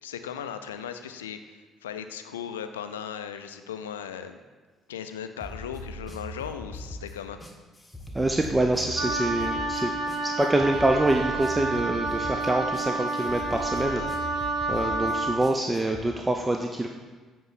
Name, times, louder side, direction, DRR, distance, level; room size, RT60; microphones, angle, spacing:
voice 1, 0.0-4.4 4.9-7.4, left 8 dB, 85° left, 9 dB, 0.4 m, -37 dB
sound 1, 5.4-16.1, left 1 dB, 10° left, 1.4 m, -40 dB
voice 2, 8.1-9.9 10.2-16.9, right 1 dB, 15° right, 3 dB, 0.7 m, -26 dB
Wind instrument woodwind instrument, 9.0-15.4, right 2 dB, 60° right, 1.0 m, -29 dB
8.1 x 4.6 x 5.8 m, 1.4 s
hypercardioid pair, 50°, 0 cm